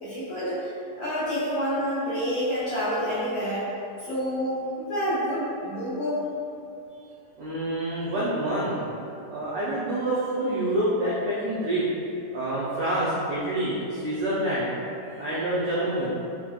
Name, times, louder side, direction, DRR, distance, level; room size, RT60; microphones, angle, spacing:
voice 1, 0.0-0.7 1.0-3.7 4.0-6.2, equal, 80° left, -13 dB, 1.5 m, -28 dB
voice 2, 7.4-8.8 9.3-11.8 12.3-14.7 15.1-16.1, right 1 dB, 90° right, -9 dB, 1.5 m, -27 dB
5.5 x 2.1 x 2.3 m, 2.7 s
omnidirectional pair, 3.8 m